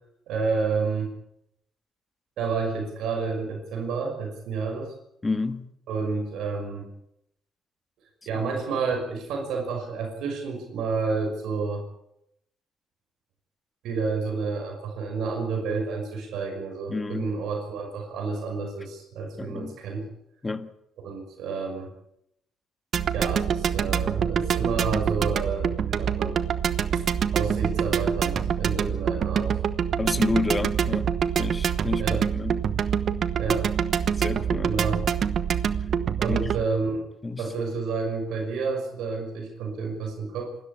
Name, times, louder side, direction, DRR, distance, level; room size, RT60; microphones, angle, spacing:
voice 1, 0.3-1.1 2.4-4.9 5.9-6.9 8.3-11.8 13.8-20.1 21.0-21.9 23.1-26.4 26.9-27.0 27.3-29.6 32.0-32.2 33.4-33.7 34.7-35.0 36.2-37.0 37.4-40.5, right 4 dB, 85° right, 5.9 m, -30 dB
voice 2, 5.2-5.7 16.9-17.3 19.4-19.8 20.4-20.7 30.0-31.1 31.4-32.6 34.2-34.7 36.3-36.4 37.2-37.4, left 3 dB, 20° left, 1.7 m, -29 dB
sound 1, 22.9-36.7, right 8 dB, 60° right, 1.1 m, -25 dB
27.0 x 13.0 x 8.6 m
cardioid pair, 90°, 0 cm